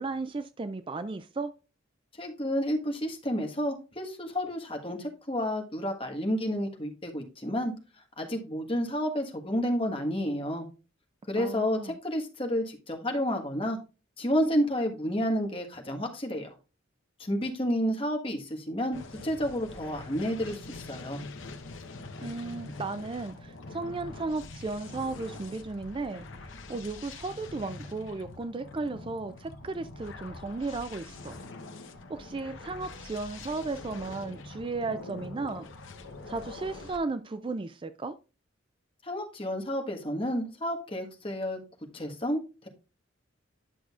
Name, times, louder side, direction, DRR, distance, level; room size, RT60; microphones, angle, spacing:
voice 1, 0.0-1.5 11.4-12.0 22.2-31.3 32.1-35.7 36.3-38.1, right 3 dB, 25° right, 0.3 m, -35 dB
voice 2, 2.2-7.7 8.2-10.7 11.3-13.8 14.2-16.5 17.2-21.2 39.0-41.6 41.9-42.7, equal, 25° left, 1.4 m, -30 dB
sound 1, 18.9-37.0, left 3 dB, 65° left, 0.9 m, -44 dB
10.0 x 6.3 x 2.4 m
head